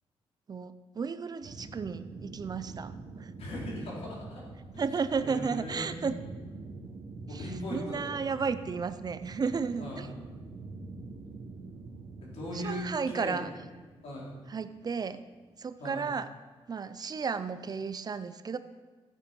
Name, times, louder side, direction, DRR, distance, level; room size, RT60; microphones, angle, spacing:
voice 1, 0.5-3.3 4.8-6.2 7.3-7.4 7.7-10.1 12.5-13.5 14.5-15.2 15.6-16.3 16.7-18.6, right 5 dB, 40° right, 12 dB, 0.5 m, -33 dB
sound 1, 1.4-15.7, right 3 dB, 65° right, 1.6 m, -46 dB
voice 2, 3.4-4.4 4.7-4.8 5.2-6.1 7.3-8.2 9.8-10.1 12.3-13.5 14.0-14.3 15.8-16.0, equal, 75° left, -5 dB, 4.2 m, -38 dB
13.0 x 8.0 x 5.4 m, 1.4 s
cardioid pair, 110°, 11 cm